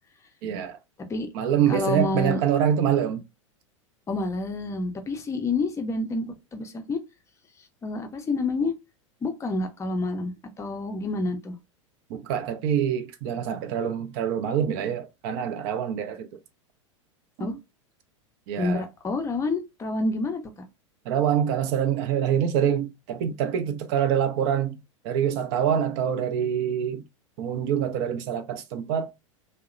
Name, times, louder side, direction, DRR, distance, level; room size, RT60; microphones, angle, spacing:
voice 1, 0.4-0.8 1.3-3.2 12.1-16.3 17.4-17.5 18.5-18.8 21.1-24.8 25.0-27.0 27.4-29.1, right 9 dB, 50° right, 0.5 m, -25 dB
voice 2, 1.7-2.4 4.1-6.3 6.5-7.0 7.8-8.7 9.2-11.6 17.4-17.5 18.6-20.4, left 2 dB, 15° left, 0.5 m, -28 dB
2.7 x 2.0 x 2.4 m
hypercardioid pair, 95°, 17 cm